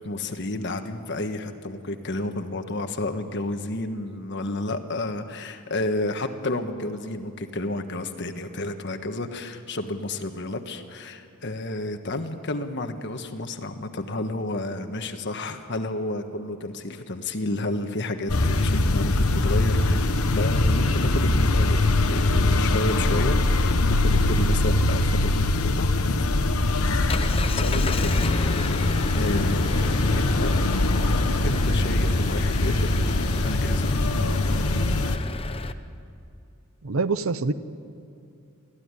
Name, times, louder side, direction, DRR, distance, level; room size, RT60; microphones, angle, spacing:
voice 1, 0.0-20.1 20.3-25.9 27.6-30.6 31.4-34.0, left 2 dB, 55° left, 7 dB, 1.4 m, -31 dB
sound 1, 18.3-35.2, left 2 dB, 80° left, 1.2 m, -22 dB
Engine, 26.2-35.7, left 3 dB, 25° left, 0.7 m, -33 dB
voice 2, 36.8-37.5, right 4 dB, 70° right, 14 dB, 0.8 m, -25 dB
23.0 x 15.0 x 9.8 m, 2.6 s
head